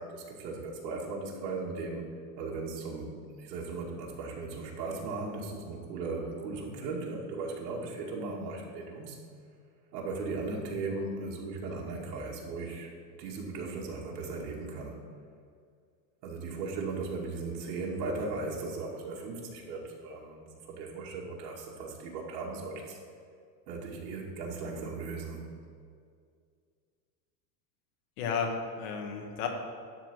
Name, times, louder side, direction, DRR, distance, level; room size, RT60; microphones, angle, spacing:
voice 1, 0.0-2.1 2.4-3.1 3.4-9.2 9.9-12.9 13.2-15.0 16.2-23.0 23.7-25.5, right 3 dB, 85° right, -2 dB, 2.4 m, -37 dB
voice 2, 28.2-29.5, left 6 dB, 60° left, 3 dB, 1.6 m, -33 dB
12.0 x 4.2 x 7.6 m, 2.2 s
supercardioid pair, 165°, 49 cm